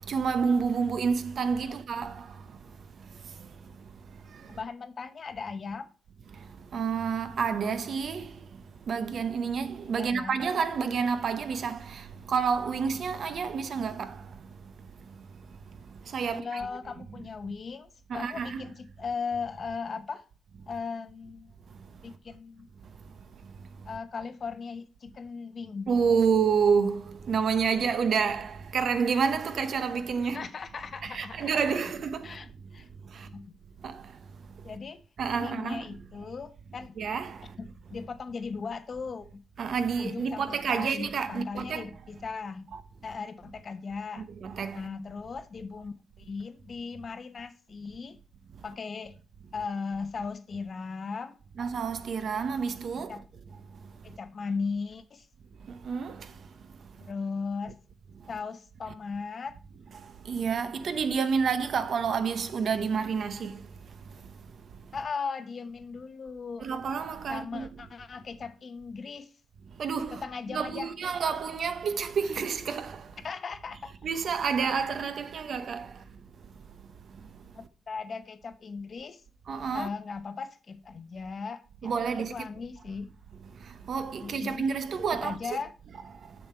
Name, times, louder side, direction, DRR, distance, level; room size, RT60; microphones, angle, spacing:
voice 1, 0.1-2.3 6.7-8.5 8.9-14.3 16.1-16.6 18.1-18.6 25.9-30.4 31.0-32.4 33.1-33.3 33.8-34.0 35.2-35.9 37.0-37.5 39.6-41.9 42.7-42.8 44.2-44.8 51.6-53.2 55.7-56.3 60.2-63.6 66.6-67.7 69.8-70.2 70.5-73.1 74.0-75.9 79.5-79.9 81.8-82.4 83.9-85.6, right 6 dB, 55° right, 0.8 m, -29 dB
voice 2, 4.5-5.9 9.9-10.4 16.3-20.2 20.7-21.5 22.0-22.7 23.8-25.9 30.3-31.8 32.2-32.5 32.7-32.9 33.1-33.6 34.6-35.0 35.3-37.0 37.6-39.4 40.0-42.7 43.0-44.3 44.7-48.2 48.6-49.1 49.5-51.4 52.9-53.2 54.0-55.3 57.0-57.8 58.3-59.6 64.9-66.7 67.3-69.3 70.1-70.9 73.2-73.9 77.5-79.2 79.7-83.1 84.2-84.7 85.2-85.7, left 5 dB, 40° left, 0.8 m, -37 dB
7.0 x 6.7 x 4.4 m
cardioid pair, 110°, 0 cm